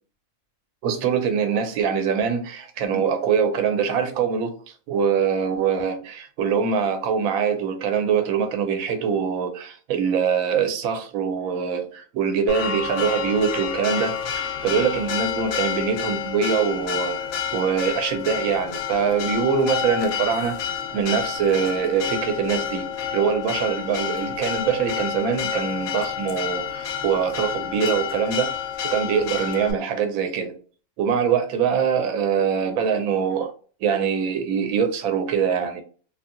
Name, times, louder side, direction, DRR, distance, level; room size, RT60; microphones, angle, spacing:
voice 1, 0.8-4.6 4.9-20.6 20.9-22.9 23.1-28.5 28.8-30.5 31.0-33.5 33.8-35.8, right 7 dB, 80° right, 1.0 m, -23 dB
Church bell, 12.5-29.7, left 8 dB, 65° left, 0.8 m, -29 dB
2.7 x 2.6 x 2.4 m
omnidirectional pair, 1.5 m